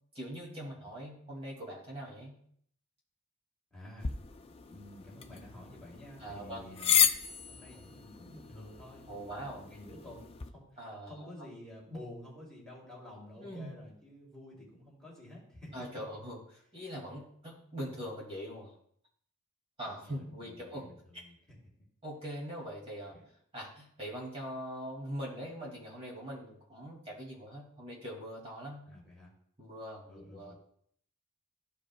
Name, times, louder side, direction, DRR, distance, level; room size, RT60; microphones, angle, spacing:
voice 1, 0.1-2.3 6.2-6.6 7.7-7.8 9.1-9.6 10.8-11.5 13.4-13.7 15.7-18.7 19.8-20.9 22.0-23.1 23.5-28.8 29.6-30.5, equal, 30° right, -4 dB, 2.3 m, -42 dB
voice 2, 3.7-4.1 4.7-7.1 7.5-10.7 11.1-15.7 19.8-21.6 22.6-22.7 23.1-23.2 28.9-29.3 30.1-30.6, left 1 dB, 5° left, -5 dB, 2.6 m, -50 dB
sound 1, 4.0-10.5, left 8 dB, 25° left, 0.5 m, -34 dB
14.0 x 5.1 x 2.3 m, 0.65 s
head